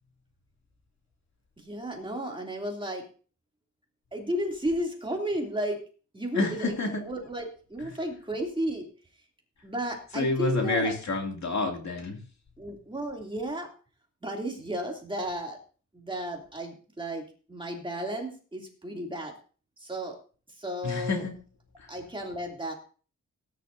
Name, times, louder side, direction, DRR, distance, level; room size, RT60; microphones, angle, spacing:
voice 1, 1.6-3.0 4.1-5.8 6.1-8.9 9.6-10.9 12.6-13.7 14.2-15.6 15.9-19.3 19.8-20.2 20.5-21.2 21.9-22.7, equal, 15° right, 0 dB, 2.8 m, -33 dB
voice 2, 6.3-7.0 10.1-12.2 20.8-21.3 21.8-21.9, left 3 dB, 60° left, 2 dB, 2.6 m, -28 dB
18.5 x 10.5 x 2.7 m, 0.38 s
wide cardioid pair, 145°, 32 cm